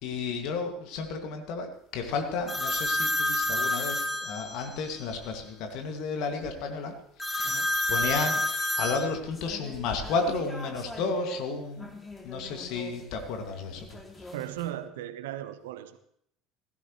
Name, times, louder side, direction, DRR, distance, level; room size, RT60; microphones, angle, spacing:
voice 1, 0.0-6.9 7.2-8.4 8.8-11.9 12.2-14.0, left 4 dB, 55° left, 4 dB, 2.1 m, -32 dB
sound 1, 2.5-4.9 7.2-11.4 11.8-12.9 13.8-14.7, left 1 dB, 15° left, 2.6 m, -31 dB
voice 2, 7.4-7.7 14.3-16.0, right 12 dB, 70° right, 12 dB, 0.9 m, -37 dB
16.0 x 14.5 x 3.1 m, 0.69 s
figure-of-eight pair, 65°, 0 cm